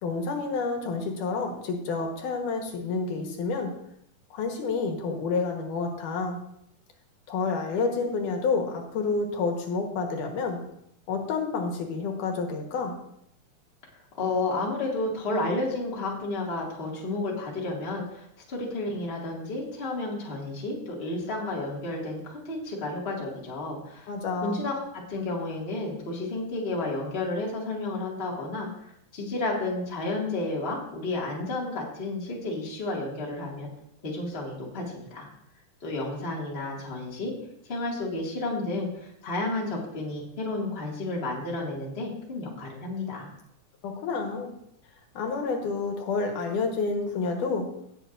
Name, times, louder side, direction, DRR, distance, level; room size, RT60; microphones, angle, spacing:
voice 1, 0.0-3.8 4.3-6.4 7.3-10.6 11.1-13.0 24.1-24.6 43.8-44.5 45.1-47.7, left 4 dB, 80° left, 2 dB, 2.8 m, -29 dB
voice 2, 13.9-24.1 24.4-33.7 34.0-35.3 35.8-37.3 37.7-43.3, left 2 dB, 20° left, -3 dB, 1.8 m, -31 dB
17.5 x 7.5 x 2.6 m, 0.75 s
omnidirectional pair, 3.6 m